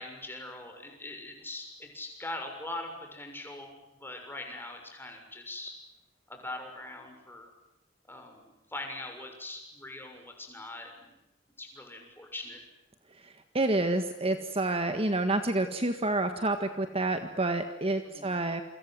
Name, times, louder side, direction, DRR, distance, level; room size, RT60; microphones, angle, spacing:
voice 1, 0.0-5.7 6.3-7.5 8.1-11.1 11.6-12.6 18.0-18.3, left 2 dB, 10° left, 3 dB, 6.8 m, -42 dB
voice 2, 13.5-18.6, right 2 dB, 30° right, 8 dB, 1.7 m, -28 dB
28.5 x 25.0 x 7.7 m, 0.89 s
head